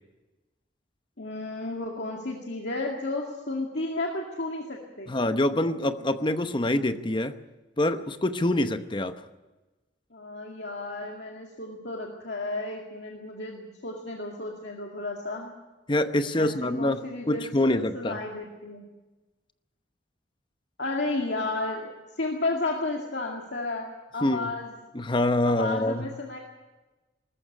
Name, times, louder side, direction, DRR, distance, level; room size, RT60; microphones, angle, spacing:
voice 1, 1.2-5.1 10.1-15.5 16.4-18.8 20.8-21.9 22.2-24.7 25.5-26.4, left 2 dB, 65° left, 0 dB, 2.2 m, -33 dB
voice 2, 5.1-7.4 7.8-9.2 15.9-18.2 24.2-24.5 24.9-26.1, left 1 dB, 25° left, 10 dB, 0.9 m, -25 dB
19.5 x 14.0 x 9.9 m, 1.2 s
head